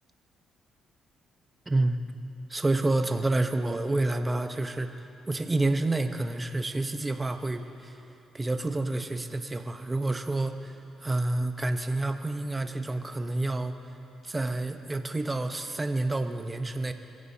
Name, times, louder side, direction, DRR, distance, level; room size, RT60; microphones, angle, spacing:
voice 1, 1.7-2.0 2.5-8.0 8.3-13.8 14.2-16.9, right 2 dB, 20° right, 6 dB, 0.9 m, -29 dB
24.0 x 16.0 x 2.8 m, 2.8 s
cardioid pair, 90°, 0 cm